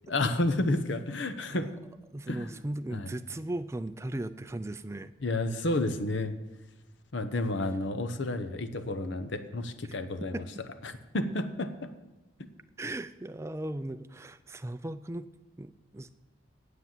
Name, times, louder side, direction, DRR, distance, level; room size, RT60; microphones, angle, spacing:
voice 1, 0.1-1.7 2.3-2.5 2.9-3.1 5.2-6.3 7.1-10.4 10.8-11.9, left 2 dB, 65° left, 10 dB, 0.8 m, -31 dB
voice 2, 2.1-5.1 10.3-10.5 12.8-15.3 15.6-16.1, right 1 dB, 15° right, 12 dB, 0.3 m, -37 dB
9.6 x 8.0 x 7.5 m, 1.0 s
head